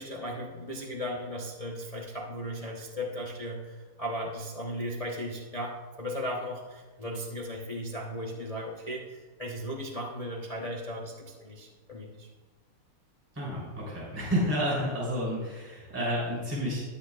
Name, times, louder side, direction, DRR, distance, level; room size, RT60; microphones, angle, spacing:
voice 1, 0.0-12.3, equal, 60° left, -2 dB, 0.3 m, -36 dB
voice 2, 13.3-16.8, equal, 5° right, -7 dB, 3.3 m, -30 dB
18.5 x 7.1 x 2.4 m, 1.4 s
omnidirectional pair, 2.4 m